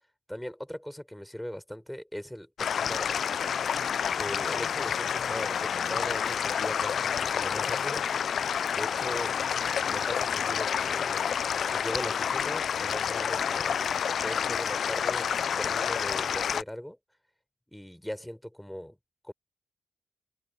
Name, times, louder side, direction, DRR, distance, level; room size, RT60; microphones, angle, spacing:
voice 1, 0.3-3.2 4.2-8.1 8.7-9.4 9.9-11.3 11.7-13.9 14.2-15.3 15.6-17.0 17.7-19.0 19.2-19.3, equal, 5° left, 3.9 m, -39 dB
sound 1, 2.6-16.6, left 7 dB, 70° left, 0.3 m, -29 dB
cardioid pair, 60°, 0 cm